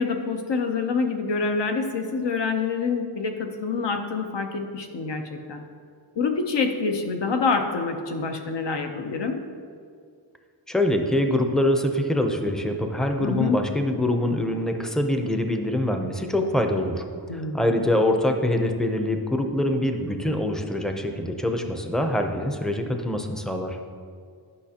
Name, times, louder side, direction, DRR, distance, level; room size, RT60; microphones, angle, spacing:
voice 1, 0.0-5.6 6.2-9.4 13.2-13.6 17.3-17.6, left 4 dB, 70° left, 5 dB, 0.8 m, -26 dB
voice 2, 10.7-17.0 17.3-23.8, left 1 dB, ahead, 5 dB, 0.6 m, -24 dB
11.0 x 5.8 x 2.9 m, 2.2 s
wide cardioid pair, 85°, 45 cm